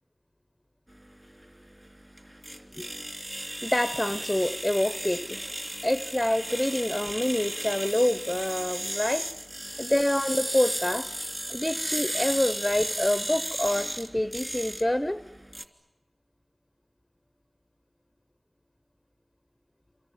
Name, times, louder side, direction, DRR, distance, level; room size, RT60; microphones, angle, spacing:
sound 1, 0.9-15.6, right 1 dB, 15° right, 3.0 m, -35 dB
voice 1, 3.3-5.5 5.8-9.3 9.8-11.1 11.5-15.2, left 1 dB, 15° left, 0.9 m, -27 dB
29.0 x 26.0 x 7.3 m
wide cardioid pair, 65°, 0 cm